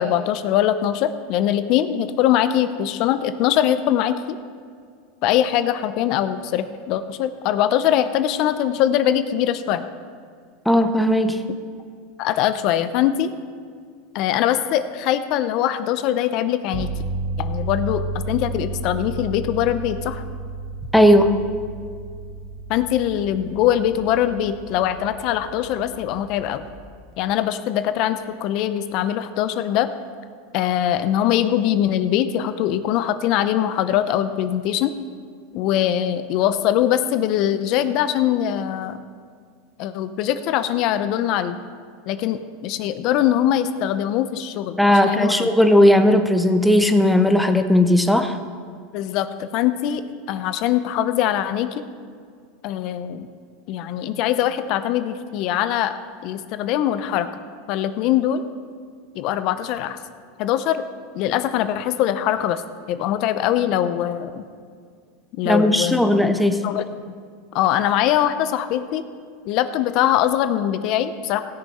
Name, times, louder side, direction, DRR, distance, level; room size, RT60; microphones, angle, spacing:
voice 1, 0.0-4.4 5.2-9.8 12.2-13.3 14.1-16.9 17.4-20.2 22.7-26.6 27.2-29.9 30.5-34.9 35.5-39.0 39.8-41.6 42.1-45.5 48.9-50.0 50.3-51.8 52.6-53.3 53.7-55.9 56.2-57.3 57.7-58.4 59.2-60.0 60.4-60.8 61.1-62.6 62.9-64.4 65.4-66.1 66.6-66.9 67.5-69.0 69.5-71.4, left 11 dB, 50° left, 11 dB, 0.6 m, -22 dB
voice 2, 10.7-11.4 20.9-21.4 44.8-48.4 65.4-66.6, left 1 dB, ahead, 7 dB, 0.8 m, -16 dB
sound 1, 16.7-26.9, right 2 dB, 30° right, 0.9 m, -32 dB
17.0 x 6.5 x 5.5 m, 2.1 s
supercardioid pair, 125°, 0 cm